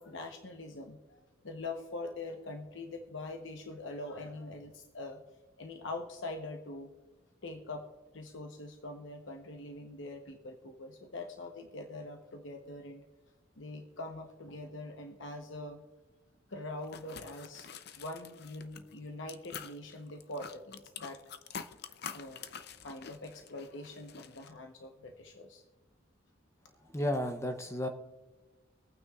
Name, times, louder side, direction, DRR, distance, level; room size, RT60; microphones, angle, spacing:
voice 1, 0.0-5.2 5.6-6.9 7.4-7.8 8.1-13.0 13.6-15.8 16.5-17.7 17.9-21.2 22.1-22.5 22.8-25.6 26.8-26.9, left 2 dB, 70° left, 4 dB, 1.0 m, -43 dB
sound 1, 16.8-19.0 19.3-24.5, left 7 dB, 55° left, 0.6 m, -47 dB
voice 2, 26.9-27.9, left 1 dB, 15° left, 6 dB, 0.6 m, -32 dB
23.5 x 9.2 x 2.4 m, 1.3 s
head